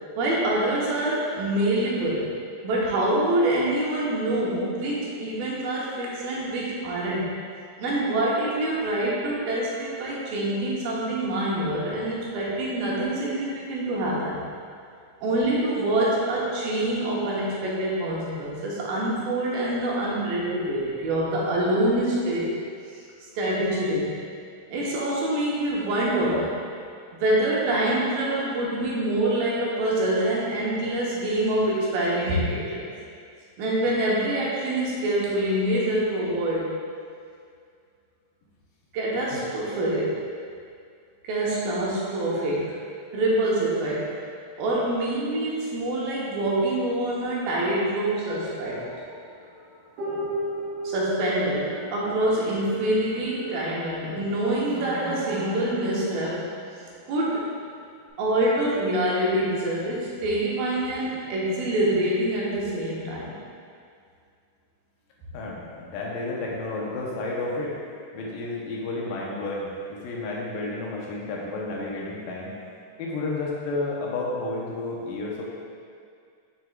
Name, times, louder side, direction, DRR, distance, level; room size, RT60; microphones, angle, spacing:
voice 1, 0.2-2.2 2.6-7.3 7.8-14.4 15.2-22.5 23.4-24.1 24.7-26.5 27.2-32.9 33.6-36.7 38.9-40.2 41.2-42.7 43.1-44.1 44.6-48.8 50.8-56.5 57.1-57.4 58.2-63.4, right 1 dB, 90° right, -5 dB, 2.9 m, -25 dB
sound 1, 48.6-54.1 54.7-57.1 58.1-58.2, right 1 dB, 65° right, 2.2 m, -36 dB
voice 2, 65.3-67.7 68.1-72.5 73.0-75.4, left 2 dB, 75° left, -3 dB, 2.4 m, -31 dB
7.2 x 6.3 x 2.4 m, 2.2 s
omnidirectional pair, 4.1 m